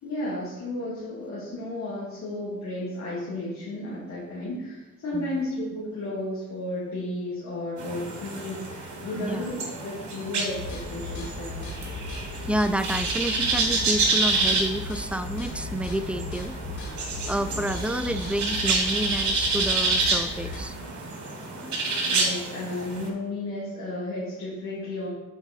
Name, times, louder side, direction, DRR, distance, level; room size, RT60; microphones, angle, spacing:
voice 1, 0.0-11.6 22.1-25.1, left 1 dB, 65° left, -7 dB, 2.2 m, -33 dB
sound 1, 7.8-23.1, right 3 dB, 70° right, 2.1 m, -28 dB
voice 2, 9.2-9.5 12.4-20.8 21.5-21.8, right 1 dB, 5° right, 11 dB, 0.4 m, -30 dB
sound 2, 10.5-20.6, left 3 dB, 85° left, 1.7 m, -37 dB
8.0 x 4.7 x 4.1 m, 1.1 s
cardioid pair, 90°, 30 cm